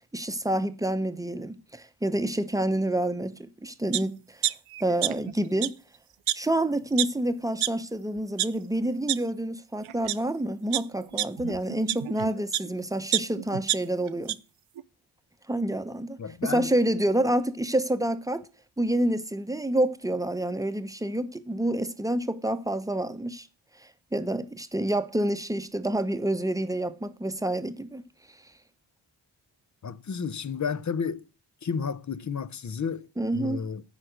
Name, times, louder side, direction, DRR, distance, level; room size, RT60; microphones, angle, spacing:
voice 1, 0.1-4.4 4.8-5.8 6.3-14.4 15.5-18.4 18.8-23.5 24.1-28.0 33.2-33.7, right 1 dB, 5° right, 0.8 m, -28 dB
sound 1, 3.9-4.0 4.4-5.3 5.6-5.7 6.3-6.4 7.0-7.1 7.6-7.7 8.2-8.5 9.1-9.2 9.9-10.2 10.7-12.7 13.1-14.3 14.8-14.9, right 13 dB, 80° right, 0.6 m, -27 dB
voice 2, 16.2-16.7 29.8-31.2 31.6-33.8, left 6 dB, 35° left, 0.6 m, -32 dB
9.3 x 5.0 x 7.9 m
cardioid pair, 70°, 49 cm